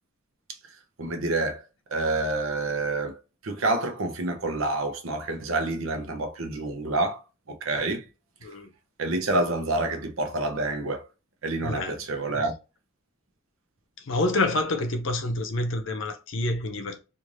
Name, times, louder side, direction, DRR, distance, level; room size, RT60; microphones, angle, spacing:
voice 1, 1.0-1.6 1.9-3.2 3.4-7.2 7.5-8.0 9.0-11.1 11.4-12.5, right 2 dB, 80° right, 0.7 m, -28 dB
voice 2, 11.6-12.0 14.0-17.0, left 2 dB, 65° left, 0.6 m, -27 dB
3.2 x 2.5 x 2.5 m
head